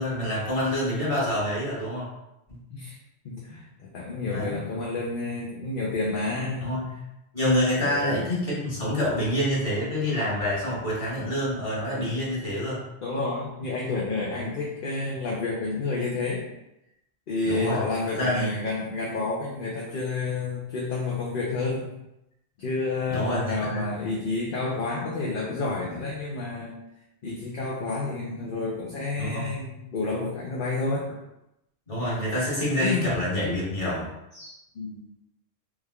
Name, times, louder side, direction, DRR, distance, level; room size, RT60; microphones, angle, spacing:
voice 1, 0.0-2.1 2.5-2.6 4.3-4.6 6.6-6.9 7.3-12.8 14.3-14.5 17.4-17.8 18.1-18.6 23.1-23.9 29.2-29.5 31.9-34.1, left 1 dB, 30° left, -8 dB, 1.3 m, -27 dB
voice 2, 3.2-6.7 7.8-8.2 12.0-12.1 13.0-16.5 17.3-21.9 22.6-26.7 27.2-31.2 32.8-33.2 34.3-35.0, left 3 dB, 55° left, -4 dB, 0.7 m, -30 dB
3.5 x 3.2 x 2.2 m, 0.87 s
omnidirectional pair, 1.2 m